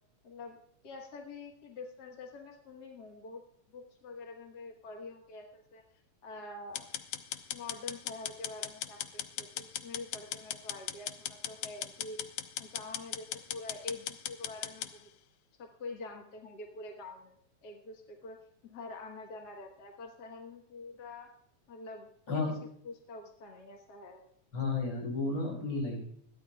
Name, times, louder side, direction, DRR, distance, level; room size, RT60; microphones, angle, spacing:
voice 1, 0.2-0.6 0.8-3.4 3.7-5.8 6.2-6.9 7.5-12.2 12.6-15.1 15.6-17.3 17.6-18.4 18.6-21.3 21.7-22.4 22.8-24.2, left 3 dB, 50° left, 2 dB, 1.2 m, -46 dB
sound 1, 6.8-14.9, left 11 dB, 80° left, 2.0 m, -38 dB
voice 2, 24.5-26.0, left 3 dB, 35° left, -2 dB, 5.8 m, -32 dB
21.0 x 14.5 x 2.3 m, 0.69 s
omnidirectional pair, 3.4 m